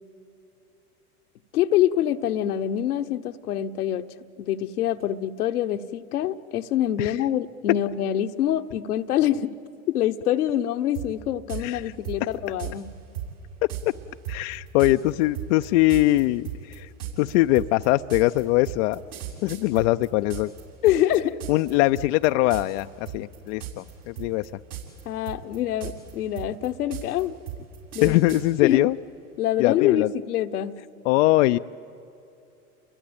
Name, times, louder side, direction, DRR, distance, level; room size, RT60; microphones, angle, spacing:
voice 1, 1.5-4.1 4.4-9.5 9.9-12.9 20.8-21.3 25.0-27.4 27.9-28.2 28.6-28.8 29.4-30.8, left 12 dB, 75° left, 9 dB, 1.1 m, -25 dB
sound 1, 10.9-11.1 11.5-11.6 12.0-12.7 13.1-13.3 13.7-13.8 14.2-20.6 20.9-21.7 22.0-22.3 22.5-22.8 23.1-23.9 24.2-25.0 25.3-28.4, right 11 dB, 75° right, 7.2 m, -35 dB
voice 2, 11.6-11.9 14.3-16.9 17.2-19.0 19.4-20.5 21.5-24.5 28.0-28.9 29.6-30.1 31.0-31.6, left 17 dB, 55° left, 9 dB, 0.6 m, -22 dB
29.5 x 22.5 x 8.8 m, 2.9 s
hypercardioid pair, 95°, 45 cm